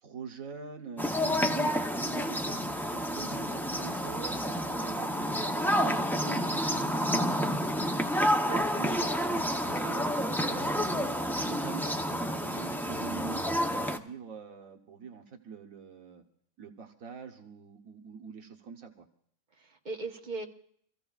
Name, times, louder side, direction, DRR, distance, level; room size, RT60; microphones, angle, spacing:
voice 1, 0.0-1.7 2.0-4.4 4.8-7.4 8.1-13.4 13.9-16.2 16.6-19.0, right 5 dB, 85° right, 2 dB, 1.5 m, -44 dB
sound 1, 1.0-14.0, equal, 5° left, 0.4 m, -29 dB
voice 2, 8.4-9.9 10.4-10.7 19.6-20.5, right 3 dB, 35° right, 3 dB, 1.2 m, -41 dB
26.0 x 14.5 x 2.4 m, 0.65 s
omnidirectional pair, 1.4 m